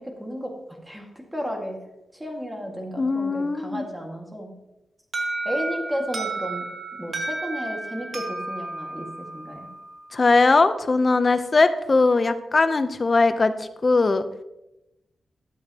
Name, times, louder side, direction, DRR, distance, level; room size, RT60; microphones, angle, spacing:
voice 1, 0.0-1.8 2.1-4.5 5.5-6.7 6.9-9.7, equal, 10° right, 1 dB, 1.8 m, -33 dB
voice 2, 3.0-3.8 10.1-14.2, left 3 dB, 35° left, 10 dB, 0.6 m, -20 dB
Alarm, 5.1-9.9, right 2 dB, 50° right, 1.7 m, -32 dB
12.0 x 7.8 x 2.9 m, 0.92 s
wide cardioid pair, 105°, 0 cm